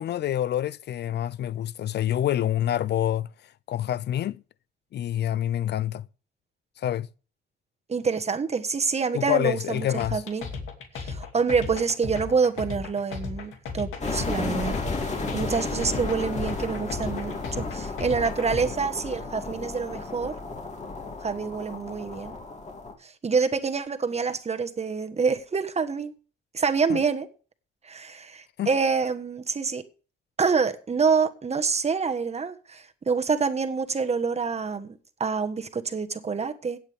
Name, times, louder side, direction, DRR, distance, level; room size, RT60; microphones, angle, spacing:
voice 1, 0.0-3.3 3.7-4.4 4.9-6.1 6.8-7.1 9.1-10.2 26.9-27.0 28.6-28.7, left 11 dB, 60° left, 0.5 m, -27 dB
voice 2, 7.9-10.4 10.9-14.8 15.0-20.4 21.2-22.3 23.0-26.1 26.5-27.3 27.8-29.8 30.4-36.8, right 5 dB, 35° right, 1.3 m, -27 dB
sound 1, 10.0-18.7, left 5 dB, 85° left, 2.5 m, -35 dB
sound 2, 14.0-22.9, left 3 dB, 35° left, 3.1 m, -33 dB
16.5 x 8.5 x 3.5 m
cardioid pair, 90°, 20 cm